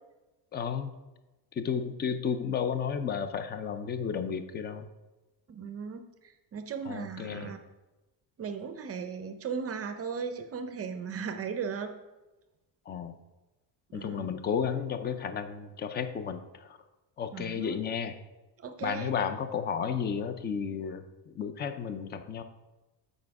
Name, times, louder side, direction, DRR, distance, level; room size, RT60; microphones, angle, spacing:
voice 1, 0.5-0.9 1.6-4.9 6.9-7.5 12.9-13.2 13.9-16.8 17.2-18.1 18.8-22.4, left 7 dB, 25° left, 9 dB, 0.5 m, -33 dB
voice 2, 5.5-6.1 6.5-7.6 8.4-11.9 13.9-14.3 17.3-17.8 18.6-19.1, right 6 dB, 35° right, 7 dB, 0.6 m, -37 dB
7.5 x 5.1 x 4.7 m, 1.1 s
cardioid pair, 145°, 42 cm